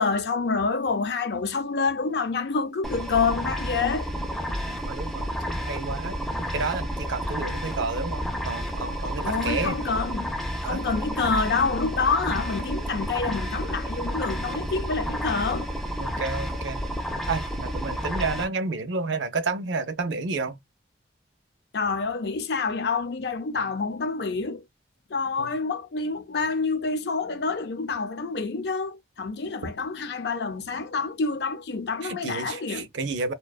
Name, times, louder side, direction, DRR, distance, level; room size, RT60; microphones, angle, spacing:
voice 1, 0.0-4.1 9.2-10.3 10.6-15.7 15.9-16.0 21.7-24.6 25.1-32.9, left 4 dB, 60° left, 0.5 m, -27 dB
sound 1, 2.8-18.5, equal, ahead, 0.4 m, -31 dB
voice 2, 4.9-5.3 5.6-6.2 6.5-9.9 10.6-10.8 16.0-16.8 17.3-20.6 25.4-25.5 32.0-33.3, right 4 dB, 75° right, 0.5 m, -30 dB
2.5 x 2.2 x 2.2 m
head